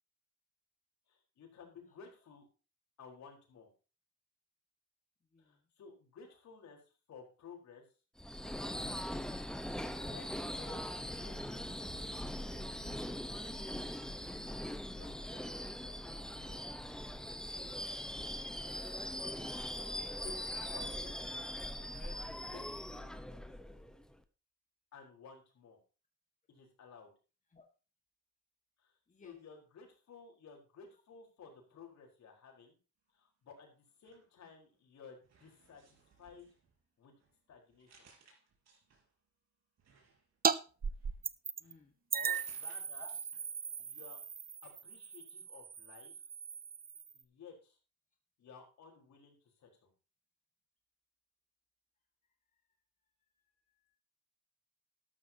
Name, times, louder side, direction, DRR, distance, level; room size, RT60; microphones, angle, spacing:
voice 1, 1.1-2.5 3.0-3.7 5.4-6.8 7.1-7.8 9.8-11.8 14.9-16.2 19.2-19.5 20.2-20.4 20.6-23.1 24.9-25.8 26.5-27.1 28.8-28.9 29.2-32.7 33.1-36.5 37.0-37.1 37.5-38.1 42.1-43.1 43.8-44.2 44.6-46.1 47.1-47.8 48.4-49.9, left 5 dB, 65° left, 2 dB, 4.6 m, -56 dB
Subway metro underground / Screech, 8.2-24.1, left 1 dB, ahead, 1.0 m, -41 dB
sound 1, 33.9-34.8 35.2-39.3 39.8-43.6 43.9-44.0, right 4 dB, 60° right, 5.1 m, -68 dB
sound 2, 40.4-40.6 40.8-41.7 42.1-47.2, right 6 dB, 30° right, 0.7 m, -37 dB
voice 2, 41.6-41.9 43.0-43.1, left 3 dB, 25° left, 3 dB, 1.8 m, -59 dB
12.5 x 12.5 x 2.9 m, 0.33 s
cardioid pair, 90°, 30 cm